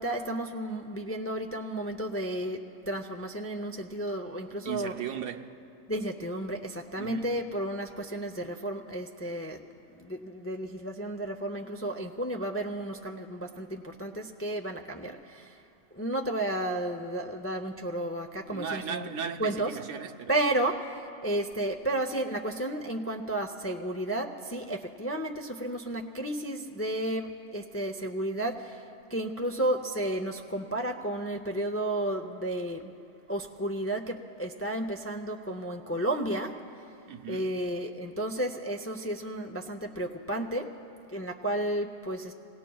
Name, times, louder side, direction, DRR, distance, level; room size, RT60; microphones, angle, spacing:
voice 1, 0.0-4.9 5.9-9.6 10.0-15.6 15.9-19.1 19.4-19.7 20.3-28.8 29.1-32.9 33.3-36.6 37.3-40.7 41.1-42.3, right 1 dB, 20° left, 0.3 m, -32 dB
voice 2, 4.6-5.6 6.9-7.4 18.5-20.3 37.0-37.5, right 7 dB, 85° right, 1.1 m, -37 dB
26.5 x 19.0 x 2.3 m
omnidirectional pair, 1.2 m